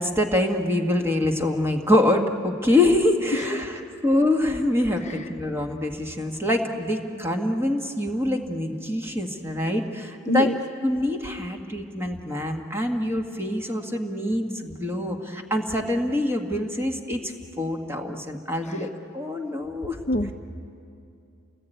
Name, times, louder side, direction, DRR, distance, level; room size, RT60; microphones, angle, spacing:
voice 1, 0.0-10.5 10.8-20.0, left 1 dB, 10° right, 2 dB, 1.8 m, -25 dB
voice 2, 5.0-5.2 10.3-10.6 18.7-18.8 20.1-20.3, left 1 dB, 35° left, 5 dB, 0.7 m, -25 dB
29.0 x 19.0 x 9.3 m, 2.6 s
head